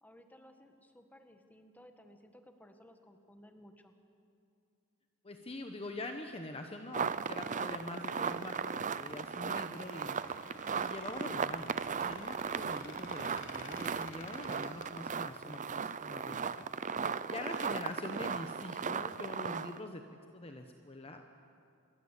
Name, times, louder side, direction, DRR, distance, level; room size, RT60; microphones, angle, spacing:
voice 1, 0.0-3.9 17.4-17.9, equal, 5° left, 5 dB, 1.7 m, -58 dB
voice 2, 5.2-10.2 10.8-16.7 17.0-20.0 20.3-21.2, left 2 dB, 25° left, 5 dB, 1.1 m, -44 dB
sound 1, 6.9-19.9, right 6 dB, 35° right, 0.6 m, -37 dB
Squeak, 7.8-14.9, left 4 dB, 60° left, 2.9 m, -54 dB
27.5 x 22.5 x 8.4 m, 2.5 s
head